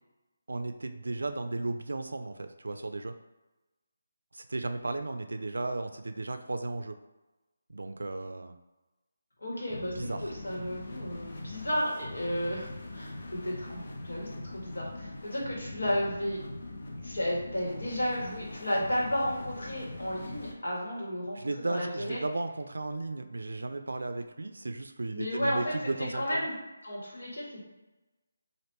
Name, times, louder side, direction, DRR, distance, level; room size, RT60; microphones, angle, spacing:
voice 1, 0.5-3.1 4.3-7.0 7.7-8.6 9.9-10.3 21.4-26.5, right 2 dB, 85° right, 8 dB, 0.3 m, -35 dB
voice 2, 9.4-16.4 17.0-21.4 21.6-22.2 25.1-26.6 26.8-27.6, equal, 80° left, -4 dB, 1.4 m, -33 dB
sound 1, 9.7-20.5, left 2 dB, 45° left, 0.5 m, -42 dB
3.0 x 2.5 x 3.4 m, 1.1 s
hypercardioid pair, 175°, 0 cm